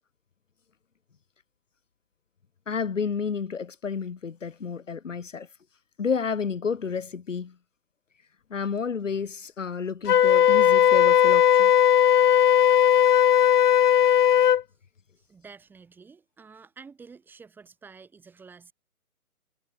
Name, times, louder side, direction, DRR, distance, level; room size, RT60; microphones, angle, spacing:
voice 1, 2.7-5.5 6.0-7.5 8.5-11.7, left 6 dB, 55° left, 3.0 m, -30 dB
Wind instrument woodwind instrument, 10.1-14.6, left 10 dB, 85° left, 0.6 m, -18 dB
voice 2, 15.3-18.7, right 5 dB, 5° right, 3.9 m, -49 dB
figure-of-eight pair, 155°, 46 cm